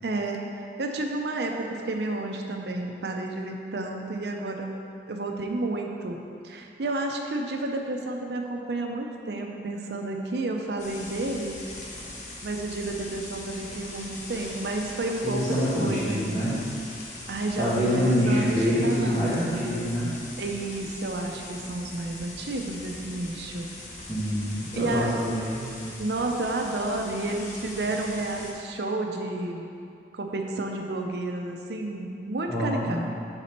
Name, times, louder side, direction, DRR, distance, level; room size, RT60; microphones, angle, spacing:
voice 1, 0.0-6.2 6.4-11.6 12.4-16.5 17.3-19.3 20.4-23.7 24.7-25.1 26.0-29.7 30.1-33.2, right 2 dB, 75° right, 2 dB, 0.6 m, -31 dB
sound 1, 10.8-28.5, left 2 dB, 45° left, 0.8 m, -41 dB
voice 2, 15.2-16.5 17.6-20.1 24.1-25.6 32.5-33.0, equal, 20° left, -14 dB, 1.2 m, -25 dB
6.8 x 4.1 x 4.3 m, 2.5 s
head